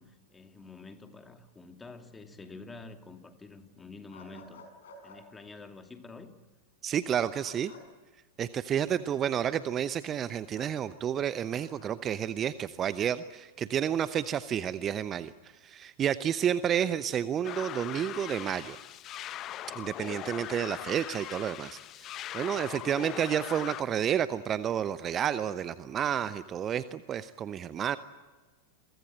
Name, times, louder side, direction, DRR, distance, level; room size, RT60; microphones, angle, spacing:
voice 1, 0.0-4.6 5.0-6.3, left 3 dB, 15° left, 6 dB, 2.6 m, -48 dB
sound 1, 4.1-5.2 7.4-7.8 10.5-10.8 11.5-11.9, left 3 dB, 60° left, 5.9 m, -51 dB
voice 2, 6.8-7.7 8.4-18.8 19.8-28.0, right 9 dB, 25° right, 15 dB, 0.8 m, -30 dB
sound 2, 17.4-23.8, left 12 dB, 35° left, 0.9 m, -40 dB
29.0 x 23.0 x 7.8 m, 1.3 s
figure-of-eight pair, 90°, 0 cm